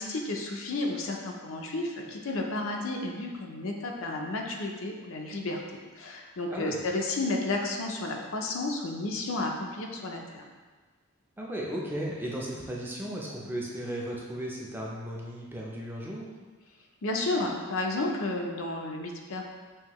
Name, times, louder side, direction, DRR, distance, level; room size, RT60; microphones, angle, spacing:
voice 1, 0.0-10.4 17.0-19.4, left 2 dB, 70° left, 1 dB, 0.5 m, -32 dB
voice 2, 11.4-16.3, right 1 dB, 10° right, -3 dB, 0.5 m, -35 dB
5.6 x 2.7 x 3.0 m, 1.4 s
head